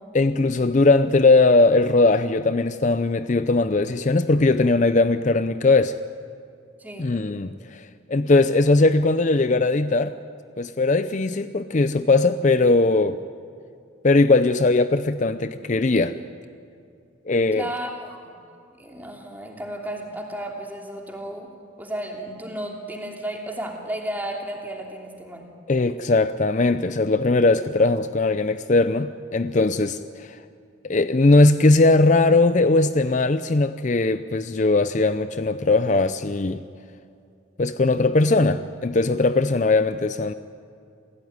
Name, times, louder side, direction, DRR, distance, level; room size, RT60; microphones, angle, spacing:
voice 1, 0.1-6.0 7.0-10.2 10.6-13.2 14.0-16.2 17.3-17.7 25.7-30.4 30.8-36.6 37.6-40.3, left 3 dB, 35° left, 12 dB, 0.5 m, -19 dB
voice 2, 6.8-7.2 17.5-18.3 18.8-21.5 21.8-25.5, right 1 dB, 10° right, 1 dB, 3.0 m, -33 dB
28.0 x 16.5 x 9.6 m, 2.5 s
head